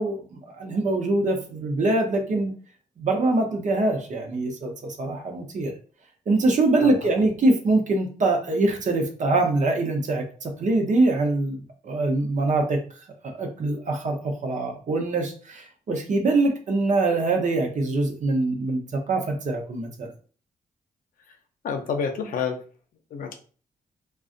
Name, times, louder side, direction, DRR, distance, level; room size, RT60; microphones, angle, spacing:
voice 1, 0.0-2.5 3.0-5.7 6.3-12.8 13.2-20.1, right 2 dB, 55° right, 3 dB, 0.8 m, -24 dB
voice 2, 21.6-22.6 23.1-23.4, left 6 dB, 70° left, 6 dB, 0.6 m, -29 dB
2.5 x 2.3 x 2.5 m, 0.41 s
supercardioid pair, 55°, 15 cm